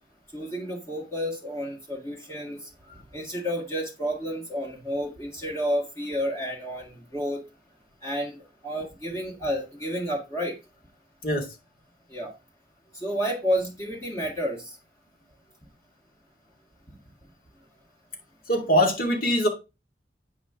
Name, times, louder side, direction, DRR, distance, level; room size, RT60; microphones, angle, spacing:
voice 1, 0.3-2.6 2.9-7.4 8.0-8.4 8.6-10.5 12.1-12.3 12.9-14.8, equal, 15° left, 1.7 m, -30 dB
voice 2, 18.5-19.5, equal, 50° left, 2.4 m, -22 dB
8.5 x 5.5 x 3.7 m
head